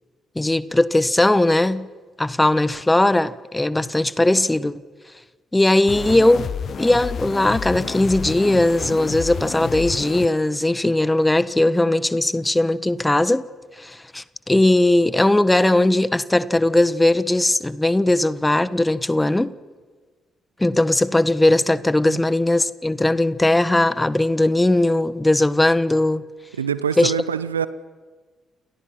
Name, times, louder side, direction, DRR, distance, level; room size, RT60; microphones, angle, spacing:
voice 1, 0.3-1.9 2.2-4.7 5.5-6.5 6.8-13.4 13.8-19.5 20.6-26.2 27.0-27.1, left 1 dB, 15° left, 1.4 m, -19 dB
sound 1, 5.9-10.3, left 7 dB, 45° left, 1.0 m, -30 dB
voice 2, 26.5-27.7, right 7 dB, 80° right, 0.8 m, -24 dB
29.5 x 29.0 x 5.9 m
figure-of-eight pair, 40°, 0 cm